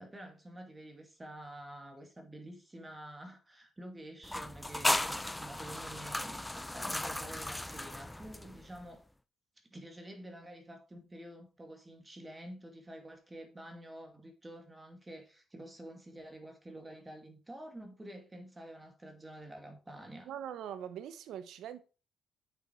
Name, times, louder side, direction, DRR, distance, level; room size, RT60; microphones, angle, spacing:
voice 1, 0.0-9.0 9.7-20.3, right 1 dB, 15° right, 2.4 m, -49 dB
sound 1, 4.2-8.8, left 1 dB, 10° left, 0.5 m, -36 dB
voice 2, 20.3-21.8, right 9 dB, 80° right, 1.0 m, -42 dB
8.0 x 6.5 x 4.6 m
cardioid pair, 90°, 0 cm